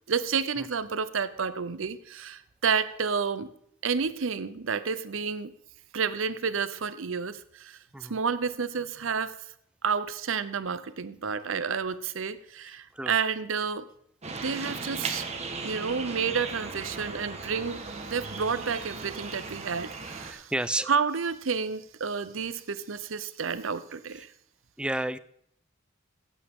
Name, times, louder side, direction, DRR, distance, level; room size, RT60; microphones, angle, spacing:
voice 1, 0.1-3.5 3.8-5.5 5.9-9.4 9.8-13.9 14.4-15.3 15.6-20.5 20.9-24.3, right 6 dB, 70° right, 14 dB, 0.7 m, -30 dB
sound 1, 14.2-20.3, right 3 dB, 35° right, 1.4 m, -37 dB
voice 2, 20.2-20.9 24.8-25.2, right 1 dB, 5° right, 15 dB, 0.4 m, -31 dB
15.5 x 8.4 x 3.7 m, 0.68 s
head